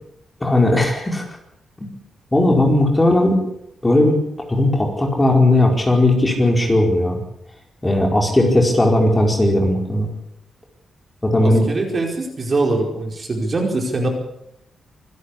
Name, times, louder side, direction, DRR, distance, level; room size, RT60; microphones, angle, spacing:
voice 1, 0.4-1.2 1.8-1.9 2.3-3.4 3.8-4.2 4.5-7.2 7.8-10.1 11.2-11.7, left 1 dB, 15° left, 1 dB, 4.8 m, -16 dB
voice 2, 11.4-14.1, right 2 dB, 35° right, 2 dB, 4.8 m, -22 dB
26.0 x 12.5 x 8.5 m, 0.79 s
wide cardioid pair, 140°, 0 cm